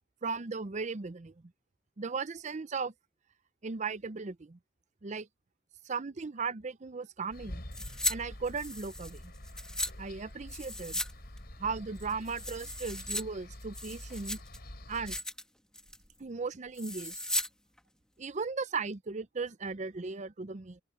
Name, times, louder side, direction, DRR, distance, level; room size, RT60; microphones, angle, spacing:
voice 1, 0.2-1.3 2.0-2.9 3.6-4.6 5.0-5.3 5.9-7.6 8.1-9.3 10.0-11.0 11.6-14.4 14.9-15.2 16.2-17.2 18.2-20.8, right 4 dB, 40° right, 0.6 m, -37 dB
sound 1, 7.3-15.2, left 1 dB, 55° left, 4.9 m, -47 dB
sound 2, 7.7-8.1 8.4-9.9 10.5-11.1 11.4-11.5 12.0-13.2 13.6-14.6 14.9-15.4 15.7-16.1 16.7-17.5 17.8-17.9, left 1 dB, 5° left, 1.4 m, -36 dB
head